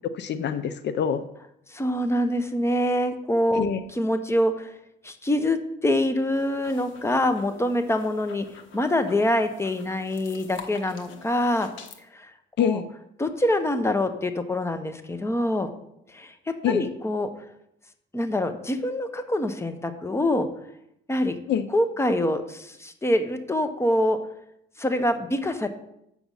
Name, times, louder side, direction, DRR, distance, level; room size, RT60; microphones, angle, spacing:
voice 1, 0.1-1.2 3.5-3.8 12.6-12.9 16.6-16.9 21.5-21.7, left 8 dB, 60° left, 12 dB, 0.6 m, -25 dB
voice 2, 1.7-3.6 4.0-4.7 5.0-8.5 8.7-11.7 12.1-12.3 12.6-12.8 13.2-15.7 16.1-17.3 18.1-20.5 21.1-21.4 21.7-24.2 24.8-25.7, left 1 dB, 15° left, 9 dB, 0.9 m, -25 dB
sound 1, 6.2-12.0, left 6 dB, 80° left, 1.1 m, -47 dB
7.9 x 6.1 x 5.5 m, 0.79 s
cardioid pair, 90°, 20 cm